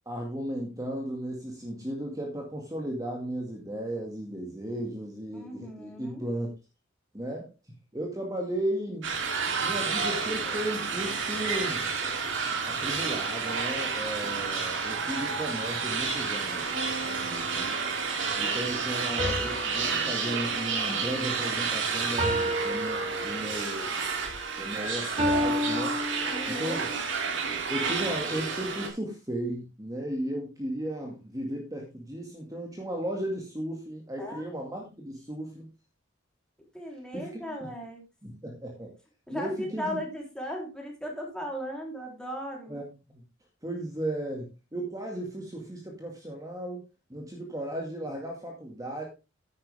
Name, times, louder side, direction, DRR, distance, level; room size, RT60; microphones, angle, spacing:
voice 1, 0.1-6.5 7.1-7.5 7.9-9.1 9.6-11.9 12.6-16.7 17.5-17.7 18.3-24.1 24.6-26.0 26.5-26.9 27.7-35.7 37.1-37.7 38.2-38.9 39.3-40.0 42.7-43.2 43.6-46.8 47.1-49.0, right 1 dB, 20° right, 1 dB, 2.1 m, -35 dB
voice 2, 5.3-6.2 17.0-17.8 26.3-26.9 34.2-34.4 36.7-38.0 39.3-42.8, equal, 5° left, 0 dB, 3.5 m, -37 dB
sound 1, 9.0-28.9, right 5 dB, 65° right, 3.1 m, -30 dB
sound 2, 16.7-18.2 19.2-21.7 22.2-23.8 25.2-26.9, equal, 35° right, 6.3 m, -32 dB
10.5 x 9.7 x 3.5 m, 0.27 s
head